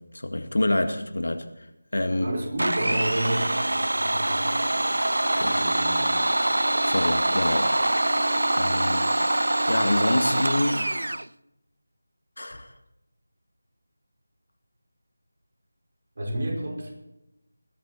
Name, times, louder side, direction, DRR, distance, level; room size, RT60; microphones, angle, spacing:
voice 1, 0.1-1.5 1.9-2.3 5.4-5.6 6.9-7.7 8.5-9.1 9.7-10.8 12.4-12.7, left 1 dB, 70° left, 6 dB, 2.1 m, -26 dB
voice 2, 2.2-4.6 4.8-6.1 16.2-17.0, right 1 dB, 50° right, 1 dB, 5.1 m, -31 dB
Domestic sounds home sounds, 2.6-11.3, right 1 dB, 75° right, 0.5 m, -24 dB
21.0 x 12.5 x 4.3 m, 0.92 s
figure-of-eight pair, 165°, 0 cm